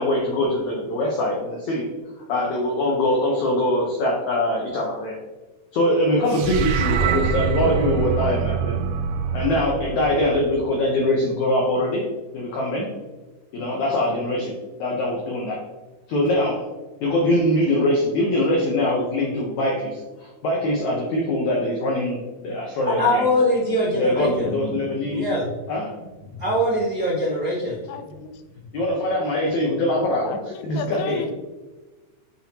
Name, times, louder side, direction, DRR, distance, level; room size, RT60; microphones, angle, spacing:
voice 1, 0.0-1.9 2.3-5.2 5.7-8.8 9.3-12.0 12.3-12.9 13.5-14.5 14.8-15.6 16.1-16.6 17.0-22.2 22.4-23.3 23.9-25.3 25.7-26.4 28.7-30.4 30.6-31.2, left 1 dB, 70° left, -2 dB, 1.8 m, -23 dB
sound 1, 6.3-10.7, right 6 dB, 85° right, 2.6 m, -25 dB
voice 2, 22.8-24.5 25.1-25.5 26.4-27.8, left 1 dB, 60° right, -8 dB, 0.8 m, -22 dB
voice 3, 27.9-28.3 30.2-31.3, left 8 dB, 90° left, 8 dB, 2.7 m, -33 dB
9.2 x 4.4 x 2.9 m, 1.2 s
omnidirectional pair, 4.5 m